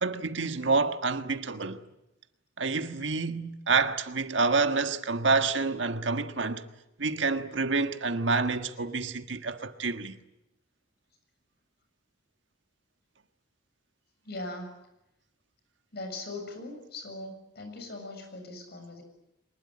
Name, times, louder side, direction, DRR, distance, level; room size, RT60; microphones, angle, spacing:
voice 1, 0.0-1.8 2.6-6.6 7.0-10.1, right 4 dB, 85° right, 1.5 m, -28 dB
voice 2, 14.2-14.8 15.9-19.0, left 2 dB, 60° left, 7.1 m, -40 dB
24.0 x 21.0 x 9.8 m
head